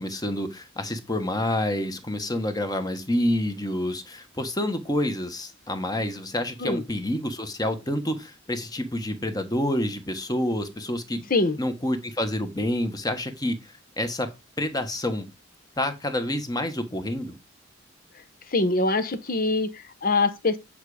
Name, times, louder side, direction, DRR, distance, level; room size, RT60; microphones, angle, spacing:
voice 1, 0.0-11.3 11.6-14.3 14.6-15.3 15.8-17.4, left 1 dB, 20° left, 1.3 m, -28 dB
voice 2, 18.5-20.6, left 3 dB, 45° left, 1.0 m, -24 dB
9.3 x 5.1 x 4.9 m
head